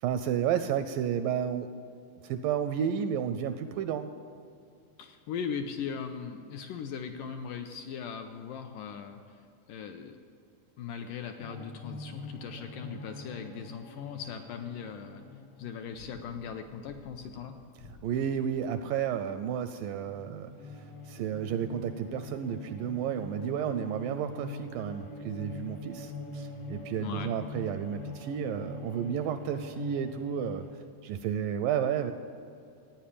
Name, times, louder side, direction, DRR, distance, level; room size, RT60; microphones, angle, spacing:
voice 1, 0.0-1.8 2.2-4.1 18.0-30.6 31.0-32.1, right 8 dB, 80° right, 10 dB, 2.0 m, -32 dB
voice 2, 5.0-9.4 9.7-10.2 10.8-15.2 15.6-17.6 27.0-27.3, left 7 dB, 80° left, 5 dB, 2.0 m, -39 dB
sound 1, 11.4-19.6 19.9-30.8, left 2 dB, 60° left, 1.6 m, -44 dB
15.0 x 9.2 x 8.5 m, 2.4 s
omnidirectional pair, 4.3 m